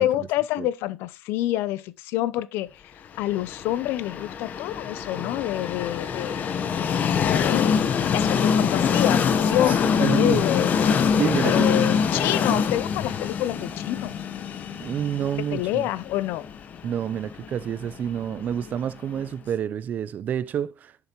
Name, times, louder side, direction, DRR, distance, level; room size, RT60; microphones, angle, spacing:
voice 1, 0.0-2.8 3.2-6.4 7.0-7.8 8.1-10.8 11.0-14.1 15.5-16.5, left 14 dB, 80° left, 0.5 m, -27 dB
Train, 3.3-19.2, left 6 dB, 50° left, 0.9 m, -24 dB
voice 2, 10.0-10.4 11.2-11.9 14.8-15.8 16.8-20.9, right 9 dB, 50° right, 0.5 m, -28 dB
6.8 x 6.7 x 2.9 m
cardioid pair, 100°, 4 cm